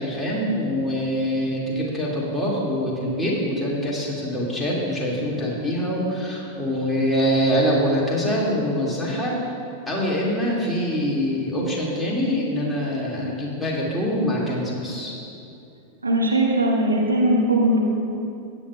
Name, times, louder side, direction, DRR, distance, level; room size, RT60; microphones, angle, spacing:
voice 1, 0.0-9.4 9.9-15.1, equal, 5° left, -5 dB, 2.2 m, -24 dB
voice 2, 16.0-17.9, right 1 dB, 80° right, -2 dB, 1.3 m, -19 dB
15.5 x 9.0 x 2.3 m, 2.6 s
figure-of-eight pair, 90°, 0 cm